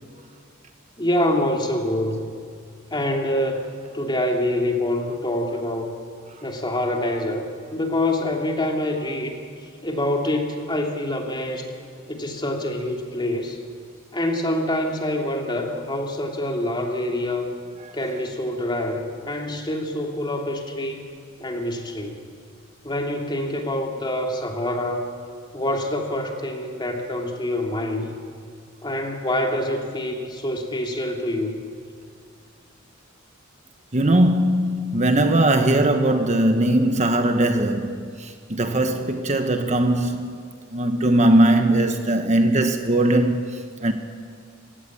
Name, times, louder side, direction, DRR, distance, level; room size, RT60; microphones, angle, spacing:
voice 1, 1.0-2.3 2.9-6.0 6.4-7.4 7.7-9.4 9.8-11.7 12.1-13.6 14.1-17.5 17.9-21.0 21.4-22.2 22.8-25.0 25.5-28.1 28.8-31.6, left 1 dB, 20° left, 2.8 m, -26 dB
voice 2, 33.9-40.4 40.7-43.9, right 1 dB, 35° right, 1.2 m, -20 dB
29.0 x 17.0 x 8.6 m
head